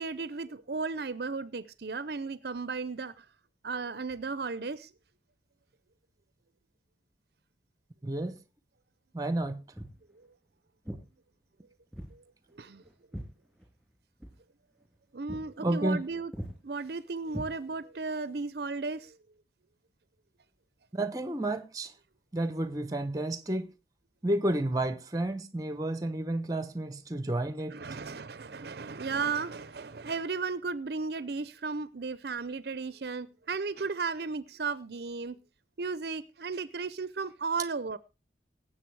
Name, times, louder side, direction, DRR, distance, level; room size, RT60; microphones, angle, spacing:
voice 1, 0.0-3.2 3.6-4.9 10.1-10.3 12.1-12.2 12.5-12.8 15.1-16.3 16.6-19.2 27.7-35.4 35.8-38.0, right 4 dB, 60° right, 0.6 m, -35 dB
voice 2, 8.0-8.4 9.1-9.6 15.6-16.0 20.9-21.9 22.3-23.7 24.2-27.8, right 1 dB, 20° right, 0.9 m, -31 dB
Walk footsteps, 9.7-10.0 10.9-11.1 11.9-12.2 12.5-13.9 14.2-14.4 14.8-15.0 15.3-15.5 15.8-16.1 16.3-16.6 17.3-18.0, equal, ahead, 3.6 m, -41 dB
18.5 x 7.9 x 4.7 m
head